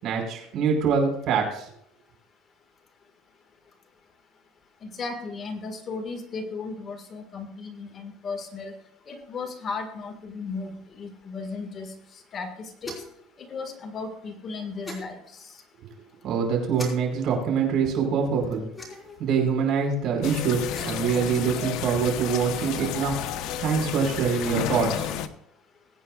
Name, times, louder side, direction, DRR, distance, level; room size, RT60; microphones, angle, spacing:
voice 1, 0.0-1.7 16.2-18.7 19.2-25.1, right 6 dB, 55° right, 1 dB, 4.9 m, -25 dB
voice 2, 4.8-8.7 9.1-11.9 12.3-12.9 13.4-15.5, left 4 dB, 30° left, 5 dB, 1.7 m, -35 dB
sound 1, 12.8-13.2 14.8-15.0 16.7-16.9 18.7-19.2 20.5-21.1, left 1 dB, 10° left, 3.9 m, -39 dB
sound 2, 20.2-25.3, left 9 dB, 60° left, 0.9 m, -31 dB
22.0 x 9.4 x 2.4 m, 0.75 s
cardioid pair, 135°, 0 cm